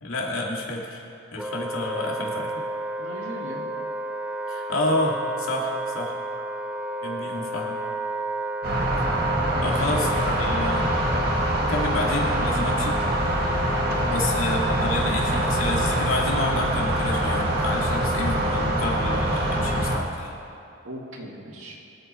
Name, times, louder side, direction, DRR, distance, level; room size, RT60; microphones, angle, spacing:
voice 1, 0.0-1.0 1.3-2.5 4.5-6.1 7.0-7.8 9.6-10.9 11.6-13.0 14.1-20.3, left 2 dB, 85° left, -2 dB, 2.3 m, -29 dB
Wind instrument woodwind instrument, 1.4-20.0, right 1 dB, 5° right, 0.3 m, -32 dB
voice 2, 3.0-3.7 7.2-7.4 9.5-10.1 13.8-14.4 20.8-21.8, equal, 75° right, -1 dB, 2.2 m, -39 dB
sound 1, 8.6-20.0, right 1 dB, 50° right, 1.7 m, -24 dB
23.0 x 8.2 x 4.4 m, 2.6 s
head